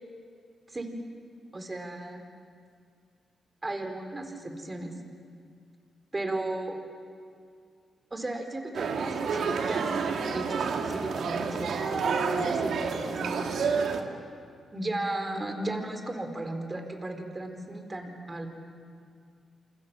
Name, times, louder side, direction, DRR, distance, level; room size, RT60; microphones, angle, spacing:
voice 1, 1.5-2.2 3.6-4.9 6.1-6.8 8.1-13.4 14.7-18.5, right 2 dB, 25° right, 5 dB, 4.3 m, -35 dB
sound 1, 8.7-14.0, right 5 dB, 75° right, 2.3 m, -29 dB
28.0 x 27.0 x 7.5 m, 2.2 s
cardioid pair, 85°, 0 cm